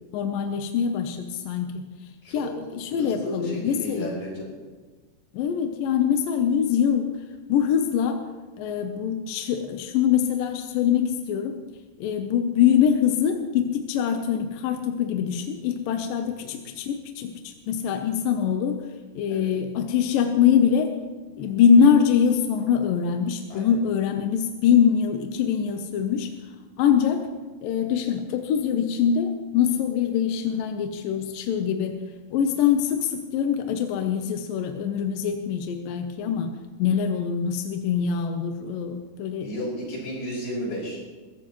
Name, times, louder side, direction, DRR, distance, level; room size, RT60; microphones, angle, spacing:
voice 1, 0.1-4.2 5.3-7.1 7.5-8.2 8.6-11.6 12.0-18.8 19.2-21.0 21.4-26.3 26.8-27.3 27.6-32.0 32.3-36.5 36.8-39.5, left 8 dB, 75° left, 5 dB, 2.2 m, -23 dB
voice 2, 3.0-4.5 16.4-16.5 19.3-19.5 21.4-21.5 23.5-23.7 25.9-26.2 39.4-41.0, equal, 55° left, -4 dB, 7.3 m, -33 dB
21.0 x 16.0 x 3.1 m, 1.3 s
omnidirectional pair, 4.7 m